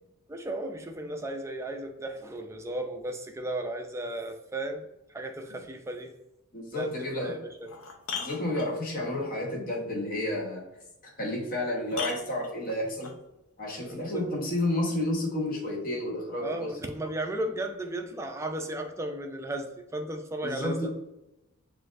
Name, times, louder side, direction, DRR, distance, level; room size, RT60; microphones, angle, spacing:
voice 1, 0.3-4.8 5.1-6.1 6.7-7.7 13.8-14.3 16.4-20.9, right 1 dB, 15° right, 4 dB, 0.3 m, -35 dB
voice 2, 6.5-7.4 8.1-10.6 11.0-13.1 13.6-16.7 20.4-20.9, left 1 dB, 40° left, -2 dB, 1.0 m, -31 dB
sound 1, 7.0-7.1 7.6-9.1 11.1-11.2 11.9-13.2 14.6-14.7, left 5 dB, 65° left, 0.6 m, -38 dB
5.9 x 2.5 x 2.5 m, 0.93 s
head